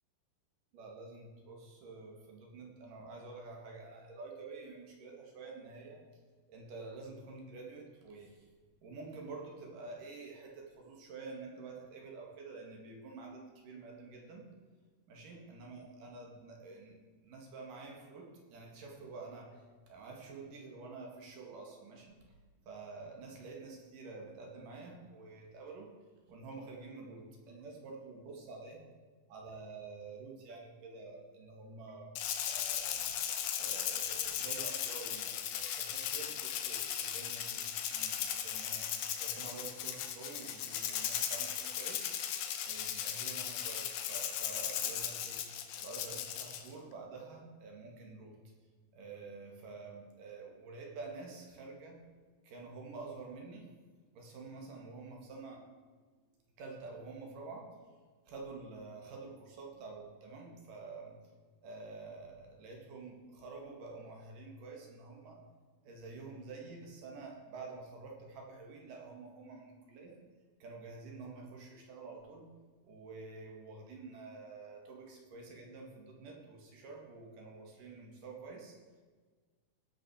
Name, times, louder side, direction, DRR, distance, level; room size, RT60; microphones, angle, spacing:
voice 1, 0.7-8.5 8.8-14.5 15.1-22.4 22.6-25.9 26.3-28.8 29.3-32.1 32.5-33.1 33.6-38.9 39.1-42.1 42.6-45.4 45.8-48.4 48.9-52.0 52.4-53.7 54.1-55.6 56.6-57.7 58.3-61.2 61.6-65.4 65.8-70.2 70.6-72.5 72.8-78.8, right 3 dB, 60° right, 0 dB, 3.3 m, -48 dB
Rattle (instrument), 32.2-46.7, left 9 dB, 70° left, 2.5 m, -37 dB
17.5 x 6.5 x 6.3 m, 1.5 s
omnidirectional pair, 4.7 m